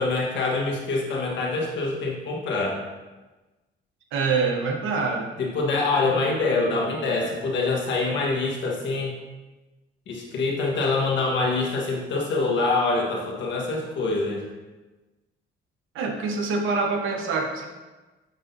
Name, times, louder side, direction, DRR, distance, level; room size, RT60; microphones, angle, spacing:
voice 1, 0.0-2.8 5.4-9.1 10.1-14.4, left 3 dB, 70° left, -1 dB, 1.3 m, -25 dB
voice 2, 4.1-5.3 15.9-17.7, right 4 dB, 85° right, 2 dB, 1.0 m, -25 dB
9.2 x 4.0 x 2.7 m, 1.2 s
cardioid pair, 90°, 20 cm